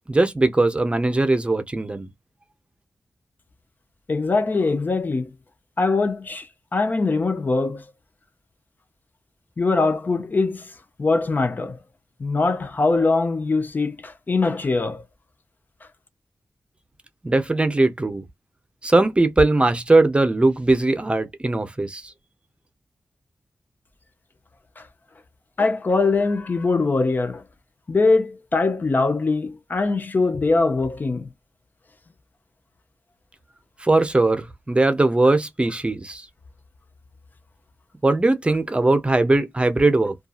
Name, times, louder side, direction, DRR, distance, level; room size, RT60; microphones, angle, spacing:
voice 1, 0.1-2.1 17.2-18.2 18.8-22.1 33.8-36.3 38.0-40.2, right 2 dB, 25° right, 0.7 m, -20 dB
voice 2, 4.1-5.3 5.8-7.8 9.6-10.7 11.0-11.8 12.2-15.0 24.8-24.9 25.6-27.4 27.9-31.3, left 3 dB, 45° left, 0.5 m, -22 dB
2.6 x 2.4 x 2.3 m
wide cardioid pair, 75°, 4 cm